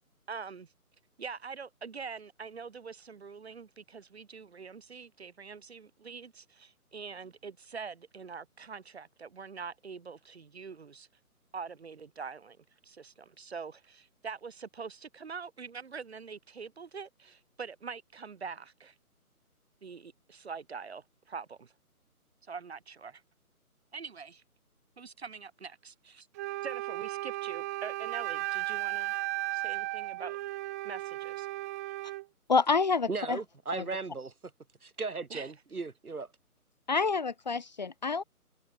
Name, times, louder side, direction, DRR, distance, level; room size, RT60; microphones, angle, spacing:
voice 1, 0.3-0.7 1.2-11.1 11.5-12.6 12.8-18.9 19.8-21.7 22.5-23.2 23.9-24.4 25.0-26.3 26.6-29.1 29.5-30.4 30.8-31.5 35.3-35.5, right 5 dB, 45° right, 6.5 m, -44 dB
Wind instrument woodwind instrument, 26.4-32.3, right 18 dB, 10° right, 2.5 m, -35 dB
voice 2, 32.5-33.4 33.7-33.8 36.9-38.2, left 4 dB, 30° left, 1.6 m, -28 dB
voice 3, 33.1-34.3 34.8-36.3, right 4 dB, 70° right, 5.1 m, -36 dB
figure-of-eight pair, 170°, 45 cm